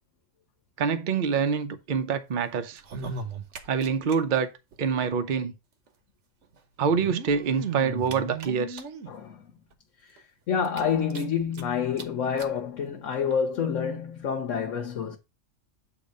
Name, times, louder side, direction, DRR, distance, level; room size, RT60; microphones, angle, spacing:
voice 1, 0.8-2.8 3.7-4.5 4.8-5.5 6.8-8.8, right 6 dB, 45° right, 0.8 m, -26 dB
sound 1, 2.7-4.2 4.4-4.5 4.7-4.8 5.9-6.0 6.8-9.1 9.7-9.8 10.2-10.3 10.6-11.6 12.0-12.1 12.4-12.5 13.3-13.4, right 5 dB, 70° right, 1.2 m, -36 dB
voice 2, 9.1-9.4 10.5-15.2, left 7 dB, 90° left, 1.2 m, -28 dB
8.4 x 3.0 x 5.1 m
omnidirectional pair, 1.3 m